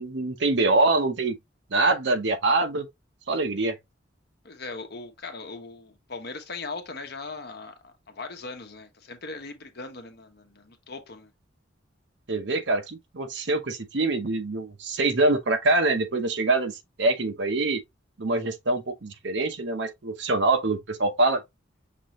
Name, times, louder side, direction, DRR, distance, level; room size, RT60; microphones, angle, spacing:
voice 1, 0.0-1.4 1.7-2.9 3.3-3.8 12.3-17.8 18.2-21.4, right 2 dB, 60° right, 0.8 m, -24 dB
voice 2, 4.4-11.3, left 3 dB, 55° left, 1.0 m, -39 dB
6.0 x 2.8 x 3.0 m
head